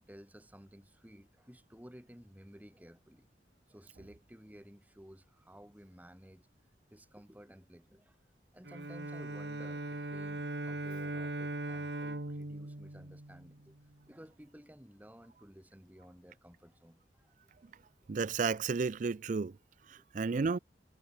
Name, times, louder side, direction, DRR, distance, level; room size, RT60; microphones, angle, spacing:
voice 1, 0.0-3.3 3.7-6.5 6.9-8.3 8.5-13.8 14.1-17.4 17.6-17.8 19.9-20.0, equal, 10° right, 2.8 m, -55 dB
Bowed string instrument, 8.7-13.9, right 2 dB, 70° right, 2.0 m, -40 dB
voice 2, 18.1-19.6 19.9-20.6, right 4 dB, 45° right, 0.4 m, -32 dB
head